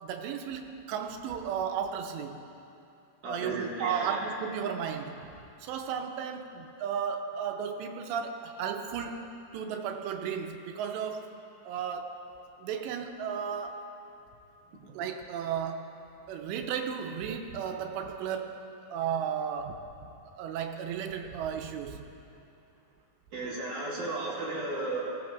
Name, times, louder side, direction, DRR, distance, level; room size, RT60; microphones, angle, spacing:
voice 1, 0.0-2.5 3.3-5.3 5.6-11.3 11.6-12.2 12.6-13.9 14.9-18.6 18.9-20.1 20.4-22.0, right 7 dB, 85° right, 5 dB, 2.9 m, -34 dB
voice 2, 3.2-4.2 23.3-25.0, right 2 dB, 60° right, -5 dB, 2.3 m, -34 dB
24.0 x 16.0 x 2.5 m, 2.7 s
omnidirectional pair, 5.1 m